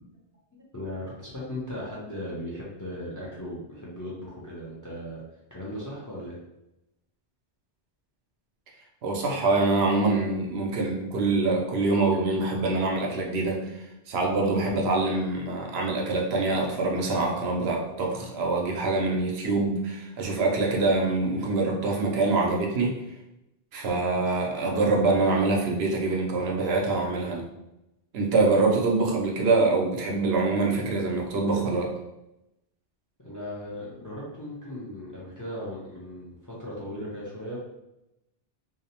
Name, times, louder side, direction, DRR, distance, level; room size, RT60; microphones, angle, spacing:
voice 1, 0.7-5.2 5.5-6.4 33.2-37.6, left 1 dB, 25° left, -6 dB, 0.4 m, -37 dB
voice 2, 9.0-13.6 14.1-22.9 23.7-27.4 28.1-31.9, right 3 dB, 85° right, 0 dB, 0.8 m, -25 dB
2.6 x 2.0 x 2.8 m, 0.90 s
omnidirectional pair, 1.0 m